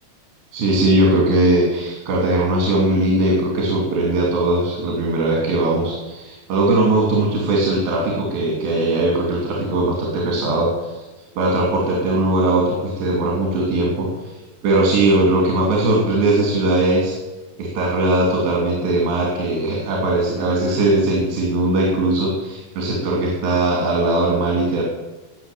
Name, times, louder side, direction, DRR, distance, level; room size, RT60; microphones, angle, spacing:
voice 1, 0.5-11.0 11.4-14.3 14.6-17.2 17.6-24.8, right 2 dB, 85° right, -3 dB, 5.0 m, -19 dB
18.5 x 6.4 x 9.2 m, 1.1 s
omnidirectional pair, 4.8 m